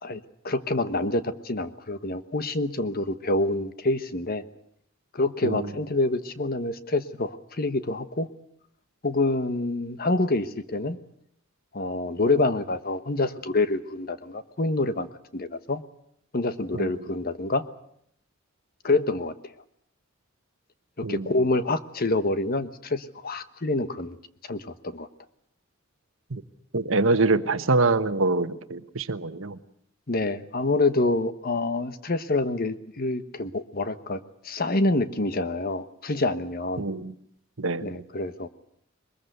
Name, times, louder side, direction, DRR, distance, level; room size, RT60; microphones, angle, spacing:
voice 1, 0.0-4.4 5.1-8.3 9.0-11.0 11.7-15.8 16.3-17.6 18.8-19.5 21.1-24.2 24.4-25.1 30.1-36.8 37.8-38.5, left 2 dB, 45° left, 12 dB, 1.2 m, -27 dB
voice 2, 26.7-29.6 36.8-37.1 37.6-38.0, right 3 dB, 75° right, 12 dB, 1.1 m, -25 dB
22.5 x 21.0 x 8.1 m, 0.70 s
head